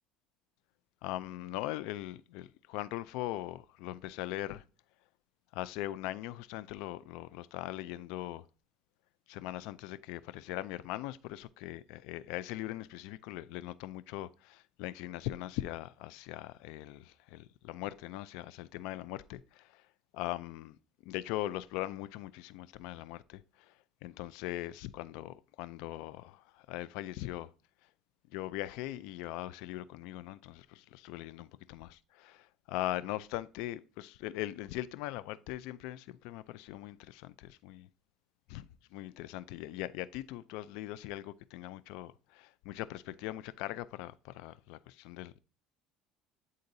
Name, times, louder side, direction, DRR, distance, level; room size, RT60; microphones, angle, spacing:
voice 1, 1.0-4.6 5.5-8.5 9.3-19.9 20.1-23.7 24.0-27.5 28.3-37.9 38.5-45.4, left 15 dB, 75° left, 0.3 m, -40 dB
9.5 x 3.8 x 2.6 m
supercardioid pair, 110°, 0 cm